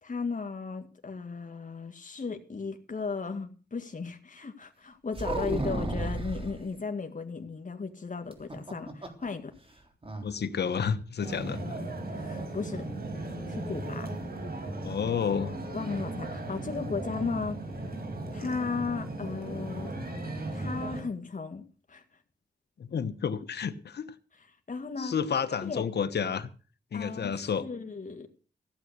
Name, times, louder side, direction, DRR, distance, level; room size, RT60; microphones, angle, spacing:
voice 1, 0.0-9.5 12.1-12.9 13.5-14.2 15.7-17.6 18.3-20.0 20.5-21.6 21.9-22.0 24.7-25.1 25.6-25.8 26.9-28.3, left 4 dB, 50° left, 6 dB, 1.9 m, -35 dB
sound 1, 5.1-6.6 8.3-9.3 9.6-9.7 10.0-10.3, right 2 dB, 35° right, 3.7 m, -33 dB
voice 2, 10.2-11.8 14.8-15.6 22.8-24.1 25.0-26.5 26.9-27.7, left 6 dB, 80° left, 13 dB, 1.1 m, -30 dB
sound 2, 11.2-21.0, right 2 dB, 65° right, 5.2 m, -36 dB
16.0 x 8.0 x 6.7 m, 0.39 s
cardioid pair, 55°, 17 cm